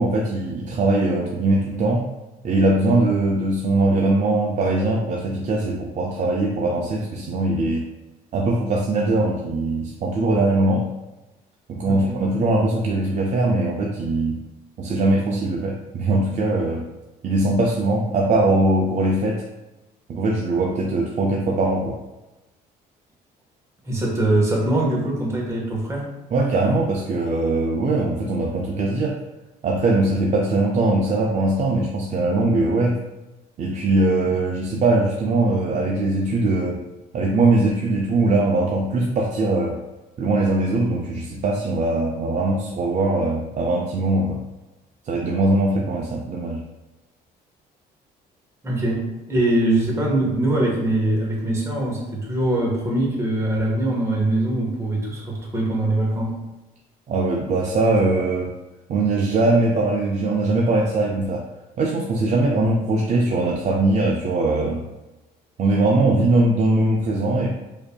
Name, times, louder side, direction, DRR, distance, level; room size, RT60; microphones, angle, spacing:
voice 1, 0.0-2.1 2.4-7.9 8.3-10.9 11.7-14.4 14.8-16.8 17.2-19.4 20.1-22.0 26.3-29.2 29.6-32.9 33.6-36.8 37.1-39.8 40.2-44.4 45.0-46.6 57.1-58.5 58.9-61.4 61.8-64.8 65.6-67.5, right 2 dB, 45° right, -1 dB, 0.5 m, -21 dB
voice 2, 11.9-12.2 23.8-26.1 48.6-56.4, right 1 dB, 15° right, -3 dB, 1.2 m, -22 dB
5.0 x 2.7 x 2.2 m, 1.0 s
cardioid pair, 110°, 17 cm